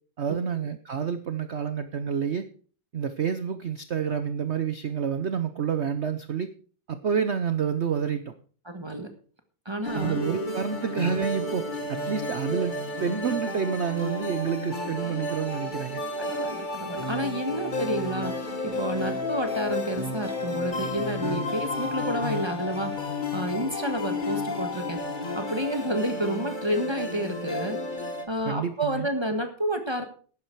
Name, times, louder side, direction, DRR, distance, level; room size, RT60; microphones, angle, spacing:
voice 1, 0.2-2.5 2.9-6.5 6.9-8.3 9.9-16.0 28.4-29.1, right 7 dB, 65° right, 10 dB, 0.6 m, -28 dB
voice 2, 8.6-9.1 9.6-10.2 16.2-25.0 25.3-27.8 28.3-30.0, right 1 dB, 15° right, 6 dB, 1.3 m, -30 dB
sound 1, 9.8-28.2, left 2 dB, 25° left, 1.5 m, -32 dB
12.0 x 9.9 x 4.6 m, 0.42 s
omnidirectional pair, 2.1 m